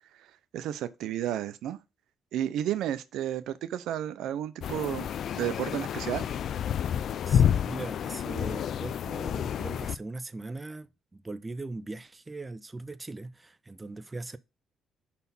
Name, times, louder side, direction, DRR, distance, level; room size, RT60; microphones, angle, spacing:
voice 1, 0.5-1.8 2.3-5.1 5.4-6.3, right 11 dB, 85° right, 0.6 m, -32 dB
sound 1, 4.6-9.9, left 8 dB, 65° left, 0.3 m, -29 dB
voice 2, 7.3-14.4, right 2 dB, 20° right, 0.5 m, -40 dB
5.6 x 4.3 x 5.4 m
cardioid pair, 90°, 0 cm